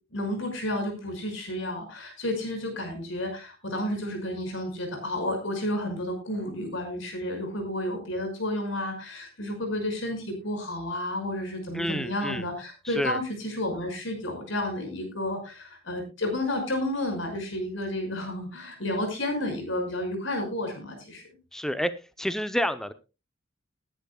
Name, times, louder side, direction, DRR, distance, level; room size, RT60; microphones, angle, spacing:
voice 1, 0.1-21.2, left 1 dB, 65° left, 4 dB, 5.7 m, -31 dB
voice 2, 11.7-12.4 13.0-13.2 21.5-21.9 22.2-22.9, equal, ahead, 12 dB, 0.7 m, -28 dB
20.0 x 10.5 x 2.3 m, 0.28 s
head